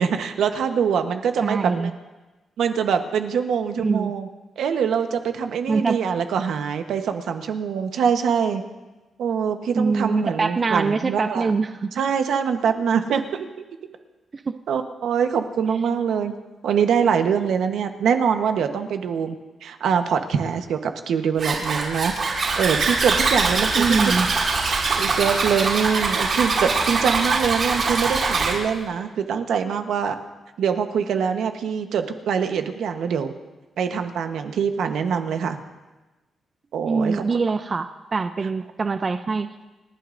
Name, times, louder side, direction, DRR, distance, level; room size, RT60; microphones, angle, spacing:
voice 1, 0.0-1.9 2.6-4.3 4.6-8.6 9.2-11.5 11.9-13.6 14.7-16.3 16.6-19.4 19.6-24.0 25.0-30.2 30.6-33.3 33.8-35.6 36.7-37.2, right 7 dB, 80° right, 7 dB, 1.0 m, -24 dB
voice 2, 1.4-1.9 3.8-4.1 5.7-6.0 9.7-11.9 14.3-14.6 23.8-24.3 36.8-39.5, right 4 dB, 30° right, 9 dB, 0.4 m, -23 dB
Zipper (clothing), 21.4-28.5, right 4 dB, 50° right, 5.2 m, -23 dB
29.0 x 11.5 x 2.6 m, 1.1 s
wide cardioid pair, 170°, 0 cm